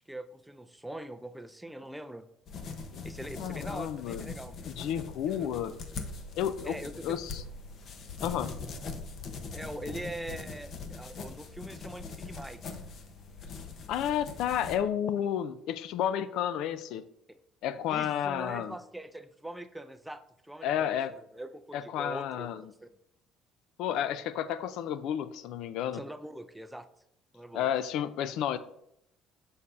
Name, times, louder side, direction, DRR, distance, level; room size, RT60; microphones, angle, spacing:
voice 1, 0.1-2.3 3.0-4.6 5.3-5.5 6.6-7.2 9.5-12.6 17.3-17.4 17.9-22.5 22.8-22.9 25.9-26.9 27.3-27.7, right 1 dB, 5° right, 10 dB, 0.4 m, -42 dB
sound 1, 2.5-14.8, left 4 dB, 50° left, 0.8 m, -42 dB
voice 2, 3.4-4.3 4.7-5.8 6.4-6.7 7.0-7.4 8.2-8.6 13.9-17.0 17.6-18.8 20.6-21.1 21.7-22.7 23.8-26.0 27.5-28.6, left 10 dB, 70° left, 14 dB, 0.4 m, -31 dB
7.0 x 6.5 x 2.5 m, 0.77 s
cardioid pair, 130°, 0 cm